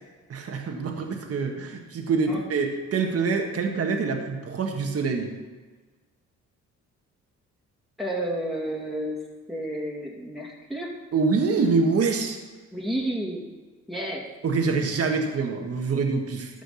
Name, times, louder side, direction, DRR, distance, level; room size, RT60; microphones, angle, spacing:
voice 1, 0.3-5.3 11.1-12.4 14.4-16.5, right 4 dB, 50° right, 3 dB, 1.6 m, -25 dB
voice 2, 8.0-9.2 9.5-10.9 12.7-13.4 13.9-14.3, right 1 dB, ahead, -3 dB, 2.4 m, -31 dB
13.0 x 5.1 x 6.9 m, 1.4 s
cardioid pair, 90°, 30 cm